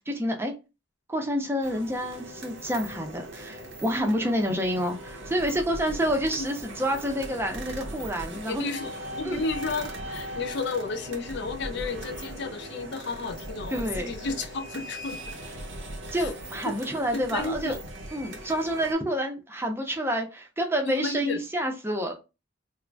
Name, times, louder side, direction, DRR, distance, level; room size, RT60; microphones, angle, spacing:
voice 1, 0.1-0.5 1.1-8.7 9.2-9.4 13.7-14.1 16.1-17.8 18.1-22.1, equal, 10° right, 0.5 m, -28 dB
sound 1, 1.6-18.9, right 1 dB, 65° right, 0.6 m, -39 dB
voice 2, 8.5-15.4 16.2-16.3 16.7-16.8 17.1-17.8 20.8-21.4, left 3 dB, 60° left, 0.5 m, -32 dB
2.4 x 2.0 x 3.2 m
head